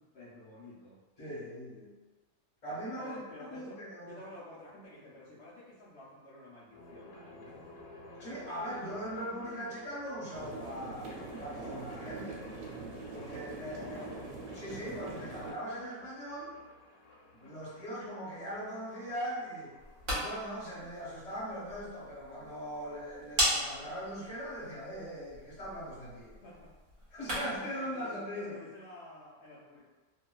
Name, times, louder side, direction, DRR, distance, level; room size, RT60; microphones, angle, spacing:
voice 1, 0.0-1.0 3.0-7.7 13.8-14.2 26.4-26.7 27.6-29.9, left 1 dB, 70° left, -11 dB, 0.6 m, -51 dB
voice 2, 1.2-1.9 2.6-3.2 3.5-4.2 8.2-12.5 13.1-14.1 14.5-16.5 17.3-19.8 20.1-26.3 27.1-28.6, equal, 30° left, -9 dB, 0.8 m, -40 dB
sound 1, 6.7-21.7, left 2 dB, 85° left, 1.2 m, -55 dB
sound 2, 10.3-15.5, right 3 dB, 75° right, 1.1 m, -43 dB
sound 3, 19.7-27.7, equal, 50° right, 1.1 m, -38 dB
2.8 x 2.3 x 2.2 m, 1.2 s
omnidirectional pair, 1.8 m